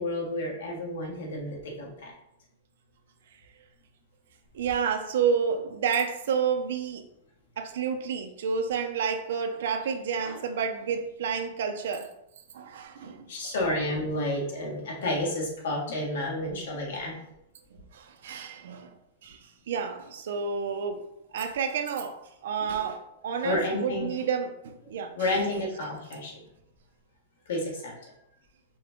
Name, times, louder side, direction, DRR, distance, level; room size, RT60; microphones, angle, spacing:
voice 1, 0.0-2.1 10.2-10.4 13.3-17.2 23.4-24.1 25.2-26.4 27.5-27.9, left 1 dB, 75° left, 1.4 m, -30 dB
voice 2, 4.5-7.1 7.6-12.1 12.5-13.5 17.9-18.9 19.2-21.0 21.3-22.2 22.4-25.4, right 6 dB, 75° right, 0.6 m, -30 dB
5.3 x 2.2 x 3.6 m
supercardioid pair, 165°, 0 cm